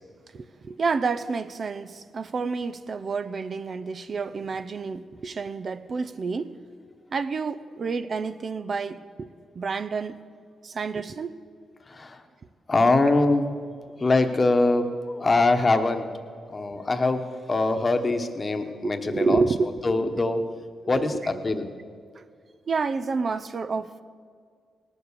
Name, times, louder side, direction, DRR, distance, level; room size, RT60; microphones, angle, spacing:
voice 1, 0.3-6.6 7.1-9.3 9.6-10.2 10.6-11.4 18.8-20.2 20.8-21.2 22.2-22.3 22.7-24.0, right 4 dB, 50° right, 0.5 m, -29 dB
voice 2, 12.7-13.5 14.0-16.1 16.5-17.2 17.5-19.4 19.8-20.4 20.9-21.7, left 2 dB, 30° left, 1.1 m, -23 dB
18.5 x 7.1 x 6.8 m
cardioid pair, 75°, 0 cm